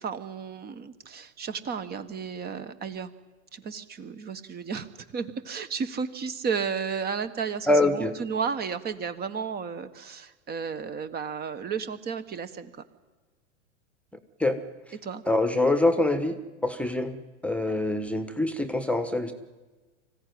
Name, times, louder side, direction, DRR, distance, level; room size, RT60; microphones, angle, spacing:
voice 1, 0.0-3.1 3.5-12.8 15.0-15.2, right 6 dB, 25° right, 12 dB, 1.4 m, -33 dB
voice 2, 7.7-8.1 14.4-14.6 15.3-16.4 16.6-19.3, left 2 dB, 5° left, 10 dB, 1.2 m, -24 dB
25.0 x 15.5 x 9.5 m, 1.3 s
hypercardioid pair, 105°, 37 cm